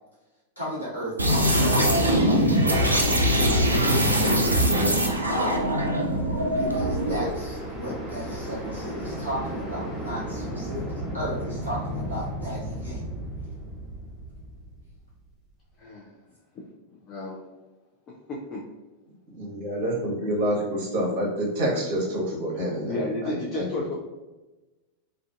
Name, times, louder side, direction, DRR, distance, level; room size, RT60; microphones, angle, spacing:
voice 1, 0.6-5.8 6.2-13.0, equal, 90° left, -9 dB, 1.1 m, -35 dB
sound 1, 1.2-7.4, equal, 80° right, 0.3 m, -22 dB
sound 2, 5.7-15.4, equal, ahead, 0.8 m, -35 dB
voice 2, 15.8-16.2 16.5-16.6 17.1-17.4 18.3-18.6 22.9-23.9, left 2 dB, 30° left, -4 dB, 0.4 m, -32 dB
voice 3, 19.3-23.9, right 1 dB, 50° right, -4 dB, 0.8 m, -28 dB
2.4 x 2.3 x 2.3 m, 1.1 s
figure-of-eight pair, 90°, 0 cm